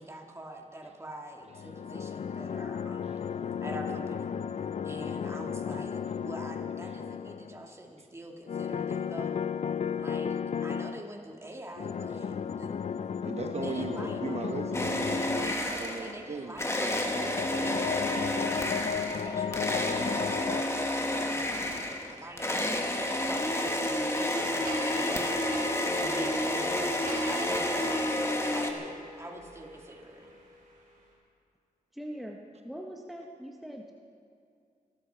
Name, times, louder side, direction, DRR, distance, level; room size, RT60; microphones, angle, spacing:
voice 1, 0.0-3.3 3.6-4.3 4.8-9.4 10.0-12.8 13.1-13.2 13.5-14.4 15.4-25.6 25.9-30.3, right 1 dB, 20° right, 1 dB, 1.8 m, -45 dB
sound 1, 1.5-7.6 8.5-11.0 11.8-15.6 16.9-20.6, left 7 dB, 50° left, 0.4 m, -34 dB
voice 2, 13.2-15.1 15.3-16.6, right 4 dB, 45° right, 4 dB, 0.9 m, -37 dB
sound 2, 14.7-16.2 16.6-28.7, left 1 dB, 20° left, 1.3 m, -30 dB
sound 3, 24.4-30.8, equal, 65° right, 3.9 m, -43 dB
voice 3, 31.9-32.4 32.6-33.9, equal, ahead, 1 dB, 0.9 m, -41 dB
23.5 x 12.5 x 4.5 m, 2.4 s
wide cardioid pair, 140°, 15 cm